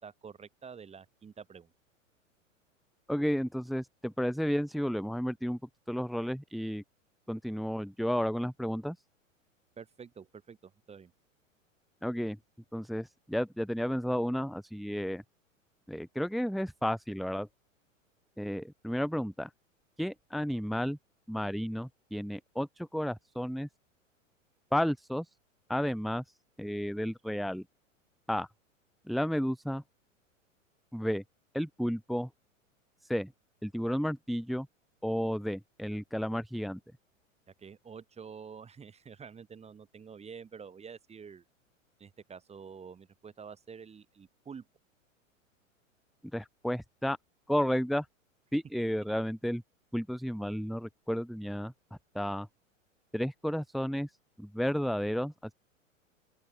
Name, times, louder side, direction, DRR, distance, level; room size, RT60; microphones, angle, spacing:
voice 1, 0.0-1.7 9.8-11.1 37.6-41.4 42.0-44.7, right 6 dB, 15° right, 2.8 m, -48 dB
voice 2, 3.1-5.6 5.9-6.8 7.3-9.0 12.0-12.4 12.7-15.2 15.9-17.5 18.4-19.5 20.0-21.0 21.3-23.7 24.7-25.3 25.7-26.2 26.6-27.6 28.3-28.5 29.1-29.8 30.9-31.2 31.5-32.3 33.0-33.3 33.6-34.7 35.0-36.8 46.3-47.2 47.5-48.1 48.5-49.6 49.9-51.7 52.1-52.5 53.1-54.1 54.4-55.3, equal, ahead, 1.0 m, -32 dB
open air
figure-of-eight pair, 100°, 40 cm